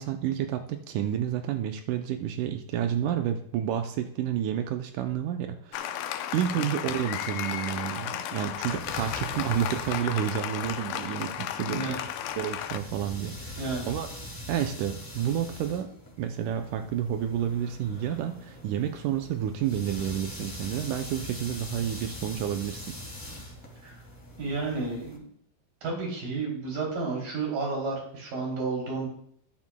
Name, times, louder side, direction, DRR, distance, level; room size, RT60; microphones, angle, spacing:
voice 1, 0.0-6.0 6.3-11.9 12.4-14.1 14.5-15.9 16.2-23.0, right 10 dB, 90° right, 5 dB, 1.7 m, -30 dB
Applause, 5.7-12.8, left 10 dB, 80° left, 1.9 m, -34 dB
sound 1, 8.4-25.2, left 1 dB, 25° left, 0.4 m, -43 dB
voice 2, 11.6-12.0 13.6-13.9 23.8-23.9 24.4-25.2 25.8-29.1, right 3 dB, 60° right, -1 dB, 4.6 m, -31 dB
13.5 x 11.5 x 2.2 m, 0.66 s
omnidirectional pair, 4.3 m